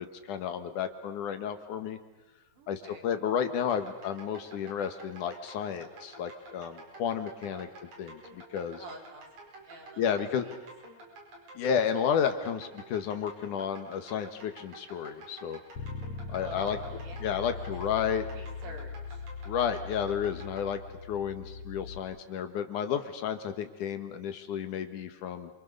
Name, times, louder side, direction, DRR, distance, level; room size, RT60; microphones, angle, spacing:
voice 1, 0.0-2.0 2.7-7.7 8.0-8.8 10.0-10.5 11.6-15.6 16.3-16.8 17.2-18.2 19.5-20.8 21.1-25.5, left 8 dB, 85° left, 8 dB, 3.0 m, -32 dB
voice 2, 2.5-3.1 7.5-7.7 8.8-9.3 9.6-10.6 16.2-19.2, right 2 dB, 85° right, 1 dB, 5.0 m, -48 dB
sound 1, 3.4-20.7, right 2 dB, 65° right, 6.5 m, -50 dB
Bass guitar, 15.8-22.0, left 4 dB, 60° left, 2.7 m, -41 dB
27.5 x 24.5 x 6.8 m, 1.1 s
omnidirectional pair, 3.5 m